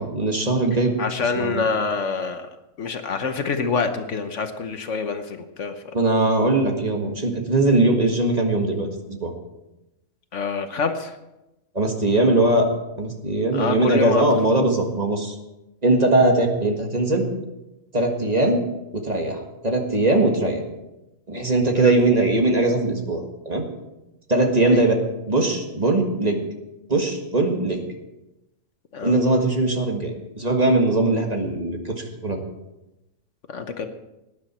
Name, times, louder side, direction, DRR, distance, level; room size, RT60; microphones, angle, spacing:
voice 1, 0.0-0.9 1.2-1.7 5.9-9.3 11.7-12.7 13.0-15.4 15.8-17.3 17.9-18.6 18.9-20.6 21.3-23.6 24.3-24.9 25.3-26.4 26.9-27.8 29.0-31.9 32.2-32.4, right 2 dB, 30° right, 2 dB, 1.7 m, -20 dB
voice 2, 1.0-2.5 2.8-5.7 10.3-11.2 13.5-14.3 21.7-21.9 24.7-24.8 28.9-29.1 33.5-33.9, left 5 dB, 65° left, 7 dB, 1.2 m, -26 dB
18.5 x 9.9 x 4.4 m, 0.95 s
omnidirectional pair, 1.4 m